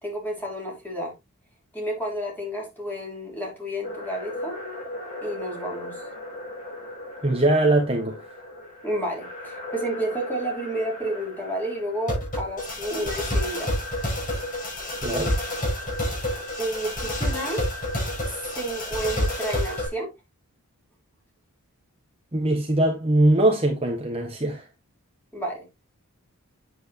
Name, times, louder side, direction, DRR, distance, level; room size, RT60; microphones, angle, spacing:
voice 1, 0.0-1.1 1.7-4.5 5.2-6.0 8.8-13.7 14.3-14.4 16.6-17.6 18.2-20.1 25.3-25.6, right 1 dB, 10° left, 3.6 m, -31 dB
sound 1, 3.8-19.9, left 1 dB, 35° left, 5.9 m, -31 dB
voice 2, 7.2-8.2 15.0-15.3 22.3-24.6, right 1 dB, 25° right, 1.2 m, -21 dB
8.7 x 7.7 x 2.8 m
head